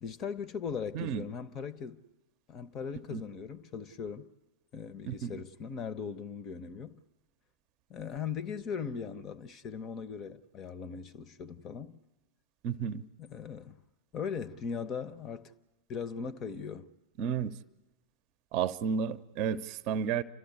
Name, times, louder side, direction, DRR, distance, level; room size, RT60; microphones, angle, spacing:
voice 1, 0.0-2.0 2.5-4.3 4.7-7.0 7.9-12.0 13.2-13.8 14.1-15.5 15.9-16.9, left 6 dB, 30° left, 0.8 m, -39 dB
voice 2, 0.9-1.3 3.1-3.2 5.1-5.3 12.6-13.0 17.2-17.5 18.5-20.2, right 7 dB, 40° right, 0.7 m, -32 dB
30.0 x 13.0 x 9.6 m
figure-of-eight pair, 90°, 0 cm